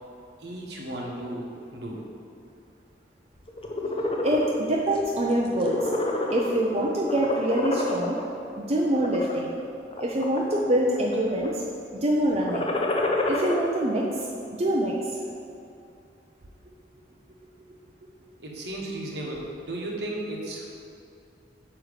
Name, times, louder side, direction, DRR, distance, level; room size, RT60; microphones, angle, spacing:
voice 1, 0.4-2.1 18.4-20.7, right 1 dB, 65° right, -2 dB, 1.4 m, -35 dB
sound 1, 3.5-4.5 4.9-5.2 5.5-6.7 7.1-8.2 8.8-9.3 9.9-10.7 11.0-11.5 12.3-13.6, left 2 dB, 30° left, 0.7 m, -28 dB
voice 2, 4.2-5.9 6.3-8.2 8.6-9.5 10.0-11.6 12.0-12.7 13.3-14.1 14.5-14.9, right 1 dB, 35° right, -3 dB, 0.6 m, -25 dB
8.8 x 3.1 x 6.5 m, 2.6 s
head